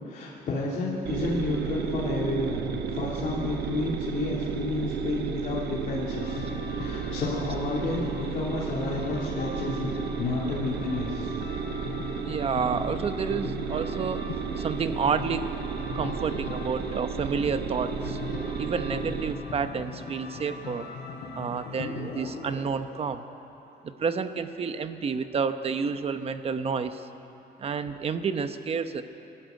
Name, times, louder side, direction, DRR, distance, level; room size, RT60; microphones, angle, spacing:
voice 1, 0.1-2.6 2.9-11.3, left 3 dB, 50° left, -6 dB, 2.9 m, -31 dB
sound 1, 1.0-19.3, right 7 dB, 75° right, 1.3 m, -33 dB
sound 2, 6.1-22.6, left 5 dB, 85° left, 3.9 m, -39 dB
voice 2, 12.2-14.2 14.6-15.5 15.9-18.2 18.6-20.9 21.3-23.2 23.8-27.1 27.6-29.0, right 6 dB, 35° right, 9 dB, 0.9 m, -30 dB
26.0 x 13.0 x 9.3 m, 2.9 s
cardioid pair, 175°, 17 cm